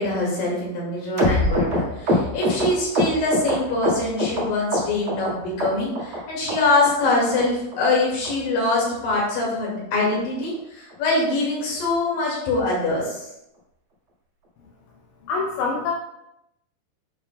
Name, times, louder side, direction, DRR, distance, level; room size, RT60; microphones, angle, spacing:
voice 1, 0.0-13.2, left 2 dB, 55° left, -4 dB, 3.4 m, -23 dB
sound 1, 1.2-4.4 4.7-5.3 5.6-6.2 6.5-6.6 6.8-7.1 7.4-7.5 7.7-7.9 8.2-8.3 8.6-8.8 9.1-9.2 9.5-9.7 10.0-10.1 10.4-10.6 10.9-11.0, equal, 55° right, 1.4 m, -24 dB
voice 2, 15.3-15.9, left 4 dB, 80° left, -2 dB, 3.1 m, -25 dB
7.8 x 7.4 x 2.3 m, 0.84 s
omnidirectional pair, 5.5 m